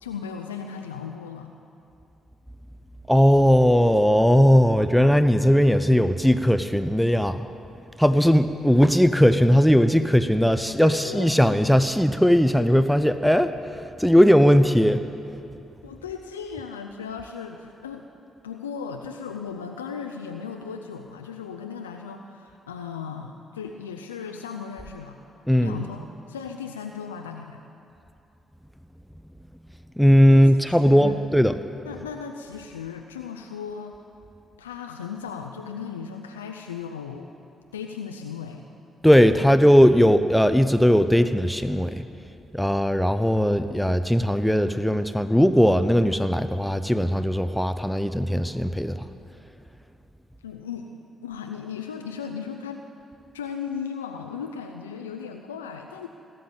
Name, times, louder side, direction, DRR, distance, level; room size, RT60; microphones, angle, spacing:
voice 1, 0.0-1.5 10.8-11.4 15.8-18.0 18.4-25.2 25.6-27.6 30.3-31.3 31.8-34.0 34.6-37.3 37.7-38.7 50.4-52.8 53.3-56.1, left 6 dB, 85° left, 4 dB, 0.5 m, -36 dB
voice 2, 3.1-7.5 8.0-15.0 25.5-25.8 30.0-31.6 39.0-42.0 42.5-49.0, equal, ahead, 10 dB, 0.7 m, -18 dB
18.5 x 7.9 x 8.7 m, 2.7 s
hypercardioid pair, 40°, 0 cm